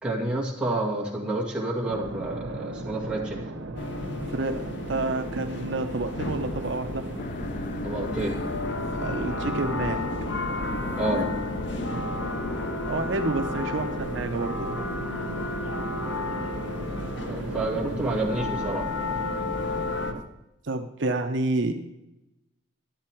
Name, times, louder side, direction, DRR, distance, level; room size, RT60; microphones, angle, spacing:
voice 1, 0.0-3.4 7.8-8.4 11.0-11.2 17.3-18.9, right 2 dB, 5° right, -4 dB, 2.0 m, -29 dB
sound 1, 1.8-20.2, right 1 dB, 85° right, 1.1 m, -37 dB
sound 2, 3.8-20.1, left 2 dB, 60° left, 0.9 m, -33 dB
voice 2, 4.3-7.0 9.0-10.0 11.0-11.2 11.7-12.0 12.9-14.8 20.6-21.7, right 2 dB, 60° right, 5 dB, 0.7 m, -29 dB
sound 3, 7.2-12.8, left 3 dB, 40° left, 0.4 m, -35 dB
12.0 x 8.6 x 4.5 m, 0.94 s
head